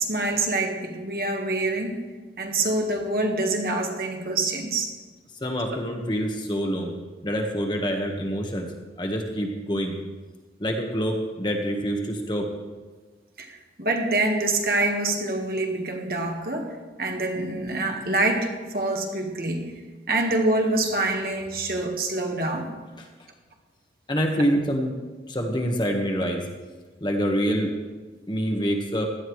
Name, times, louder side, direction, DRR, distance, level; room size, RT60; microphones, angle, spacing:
voice 1, 0.0-2.0 2.4-4.9 5.7-5.8 13.4-18.5 18.7-19.7 20.1-22.7, right 2 dB, 55° right, 2 dB, 1.5 m, -26 dB
voice 2, 5.4-6.9 7.2-8.7 9.0-9.9 10.6-12.5 23.0-23.1 24.1-24.9 25.3-26.5 27.0-27.7 28.3-29.1, equal, 25° left, 2 dB, 1.4 m, -26 dB
16.5 x 12.5 x 3.2 m, 1.3 s
head